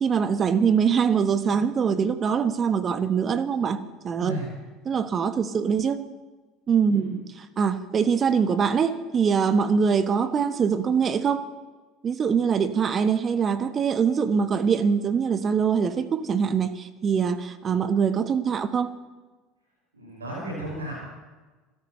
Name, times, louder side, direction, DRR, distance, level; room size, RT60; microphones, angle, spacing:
voice 1, 0.0-4.4 4.8-6.0 6.7-11.4 12.0-18.9, right 6 dB, 35° right, 11 dB, 1.2 m, -23 dB
voice 2, 19.9-21.0, right 1 dB, 90° right, -4 dB, 5.8 m, -34 dB
29.0 x 12.5 x 3.2 m, 1.2 s
hypercardioid pair, 70°, 0 cm